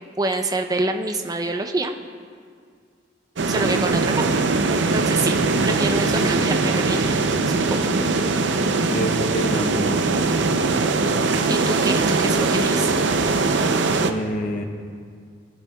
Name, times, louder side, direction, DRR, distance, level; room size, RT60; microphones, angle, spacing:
voice 1, 0.2-1.9 3.5-4.3 4.9-5.4 5.6-7.2 7.5-7.9 11.5-12.9, right 2 dB, 20° right, 5 dB, 0.5 m, -26 dB
sound 1, 3.4-14.1, right 3 dB, 70° right, 0.5 m, -21 dB
voice 2, 8.9-10.0 10.5-11.0 14.0-14.6, left 1 dB, 40° left, 3 dB, 0.7 m, -28 dB
19.5 x 8.9 x 2.3 m, 2.1 s
head